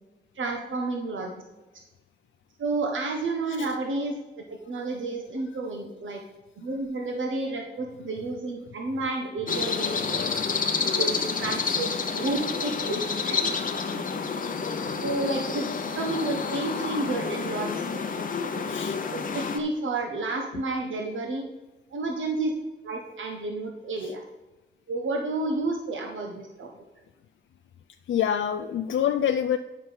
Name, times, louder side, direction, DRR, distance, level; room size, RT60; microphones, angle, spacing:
voice 1, 0.3-1.3 2.6-4.1 4.6-6.2 6.6-10.2 11.0-11.1 11.4-13.5 13.9-14.0 15.0-17.8 18.5-18.6 19.1-21.4 21.9-22.5 22.8-24.2 24.9-26.7, right 2 dB, 80° right, 2 dB, 1.1 m, -31 dB
sound 1, 9.5-19.6, left 5 dB, 45° left, 0.8 m, -29 dB
voice 2, 18.6-19.0 24.0-24.1 28.1-29.6, left 9 dB, 85° left, 7 dB, 0.4 m, -27 dB
9.6 x 5.7 x 5.1 m, 1.1 s
wide cardioid pair, 170°, 20 cm